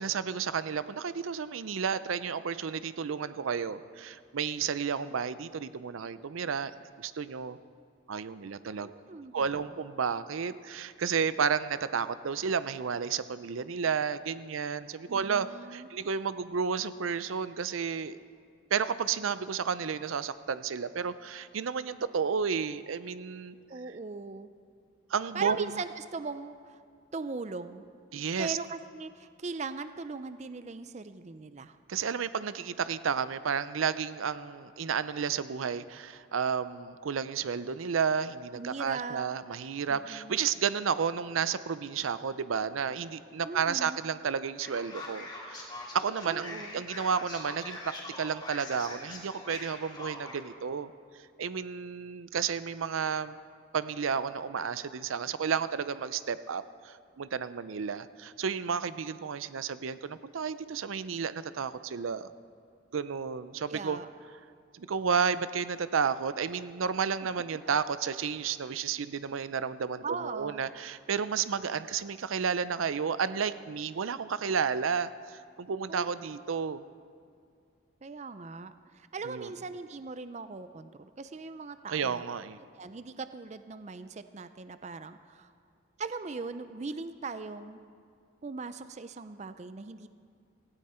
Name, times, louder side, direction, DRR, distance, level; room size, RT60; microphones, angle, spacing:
voice 1, 0.0-6.7 7.0-7.6 8.1-8.9 9.3-18.2 18.7-23.6 25.1-25.8 28.1-28.6 31.9-45.7 45.9-50.9 51.4-53.4 53.7-62.3 62.9-64.0 64.7-76.8 79.2-79.5 81.9-82.6, right 6 dB, 90° right, 14 dB, 0.5 m, -32 dB
voice 2, 8.8-9.5 15.1-15.9 23.7-24.5 25.3-26.8 27.1-27.8 28.4-31.8 38.5-39.2 39.9-40.4 43.4-44.0 46.3-46.8 63.7-64.1 70.0-70.6 75.9-76.1 78.0-82.2 82.8-85.5 86.0-87.8 88.4-90.1, right 4 dB, 35° right, 11 dB, 0.4 m, -40 dB
Male speech man speaking, 44.6-50.4, left 2 dB, 20° left, 2.6 m, -43 dB
17.0 x 16.0 x 4.4 m, 2.2 s
head